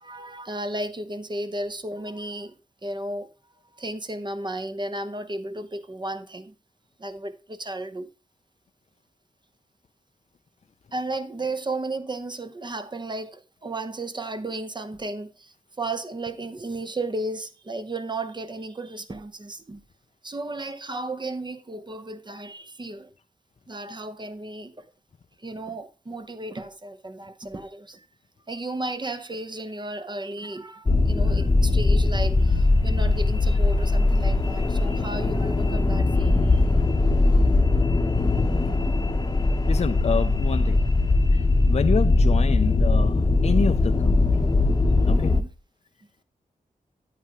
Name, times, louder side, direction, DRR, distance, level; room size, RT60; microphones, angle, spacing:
voice 1, 0.0-2.5 2.8-3.3 3.8-6.5 7.0-8.1 10.9-19.8 20.2-23.1 23.7-24.8 25.4-28.0 28.5-36.6 45.1-45.5, right 2 dB, 30° right, 0.9 m, -34 dB
sound 1, 30.9-45.4, left 2 dB, 30° left, 0.9 m, -20 dB
voice 2, 39.7-40.9 41.3-44.5 45.0-45.4, left 6 dB, 50° left, 0.5 m, -28 dB
9.1 x 8.9 x 3.0 m
wide cardioid pair, 125°, 14 cm